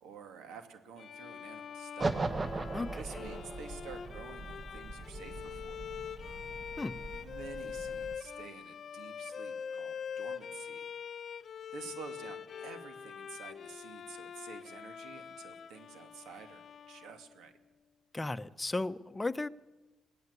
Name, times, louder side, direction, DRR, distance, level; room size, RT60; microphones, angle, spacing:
voice 1, 0.0-2.2 3.0-5.8 7.0-10.9 11.7-17.5, right 6 dB, 85° right, 2.5 m, -50 dB
Bowed string instrument, 1.0-17.5, left 7 dB, 55° left, 1.0 m, -44 dB
sound 1, 2.0-8.2, right 3 dB, 30° right, 1.2 m, -39 dB
voice 2, 18.1-19.5, left 2 dB, 15° left, 0.8 m, -35 dB
22.5 x 16.0 x 8.2 m
cardioid pair, 90°, 0 cm